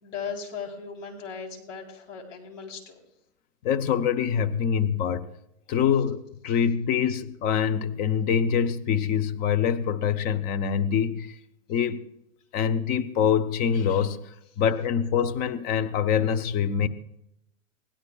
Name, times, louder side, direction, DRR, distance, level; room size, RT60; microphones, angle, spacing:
voice 1, 0.0-2.9, left 6 dB, 70° left, 3 dB, 3.7 m, -37 dB
voice 2, 3.6-5.3 5.7-11.3 11.7-12.0 12.5-16.9, left 7 dB, 25° left, 11 dB, 0.6 m, -25 dB
21.5 x 16.5 x 2.3 m, 0.80 s
hypercardioid pair, 140°, 39 cm